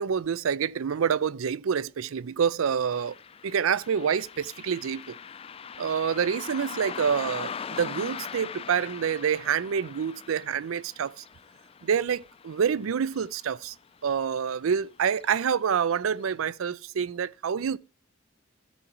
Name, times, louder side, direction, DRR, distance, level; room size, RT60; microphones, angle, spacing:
voice 1, 0.0-3.1 3.4-5.2 5.8-11.2 11.8-13.7 14.0-17.8, right 7 dB, 90° right, 0.4 m, -27 dB
Car passing by, 2.9-13.7 14.0-14.1 15.1-15.3 15.7-15.8 16.3-16.4, left 6 dB, 30° left, 0.3 m, -41 dB
13.0 x 7.8 x 3.0 m
head